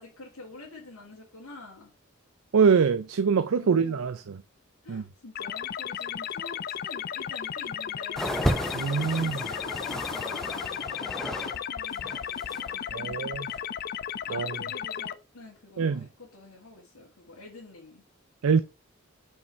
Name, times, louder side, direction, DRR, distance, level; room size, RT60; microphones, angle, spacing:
voice 1, 0.0-1.9 3.5-4.1 4.8-8.5 9.1-13.9 14.3-18.0, left 2 dB, 85° left, 2.0 m, -47 dB
voice 2, 2.5-4.4 4.9-5.0 8.7-9.4 12.9-13.5 14.3-14.6 15.8-16.0 18.4-18.6, right 6 dB, 80° right, 0.5 m, -24 dB
sound 1, 5.4-15.1, left 9 dB, 45° left, 0.3 m, -34 dB
sound 2, 8.2-11.6 11.8-12.7 13.5-13.6, equal, ahead, 0.7 m, -33 dB
5.5 x 5.5 x 4.4 m
head